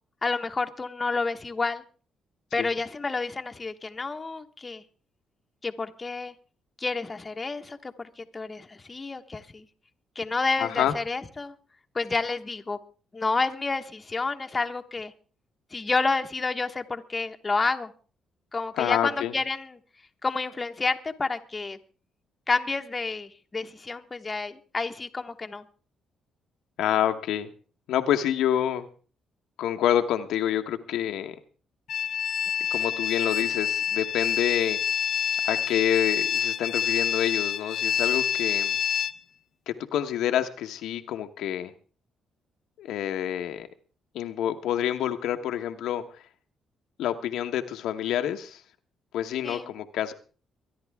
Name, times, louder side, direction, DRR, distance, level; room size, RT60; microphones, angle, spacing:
voice 1, 0.2-1.8 2.5-4.8 5.6-6.3 6.8-9.7 10.1-11.5 11.9-12.8 13.1-15.1 15.7-17.9 18.5-19.8 20.2-21.8 22.5-25.7 49.4-49.7, left 3 dB, 25° left, 6 dB, 1.1 m, -29 dB
voice 2, 10.6-10.9 18.7-19.3 26.8-27.5 27.9-28.9 29.6-31.3 32.7-34.8 35.4-38.8 39.7-41.7 42.8-43.7 44.1-46.0 47.0-48.6 49.1-50.1, left 10 dB, 85° left, 6 dB, 1.0 m, -27 dB
sound 1, 31.9-39.1, left 9 dB, 65° left, 0.6 m, -27 dB
24.0 x 10.5 x 3.5 m, 0.39 s
cardioid pair, 90°, 0 cm